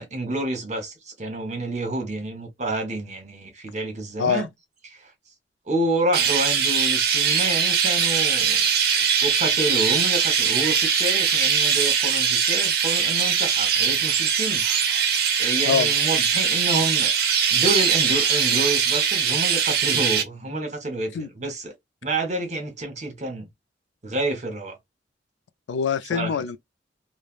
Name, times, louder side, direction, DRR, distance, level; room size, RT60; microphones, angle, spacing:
voice 1, 0.0-4.5 4.8-5.1 5.7-8.7 9.2-14.6 15.4-17.1 17.5-21.7 22.0-23.5 24.0-24.8 26.1-26.4, right 2 dB, 40° right, 1.0 m, -28 dB
Chirp tweet, 6.1-20.2, right 7 dB, 60° right, 0.6 m, -21 dB
voice 2, 25.7-26.6, left 6 dB, 85° left, 0.3 m, -24 dB
3.2 x 2.1 x 2.3 m
head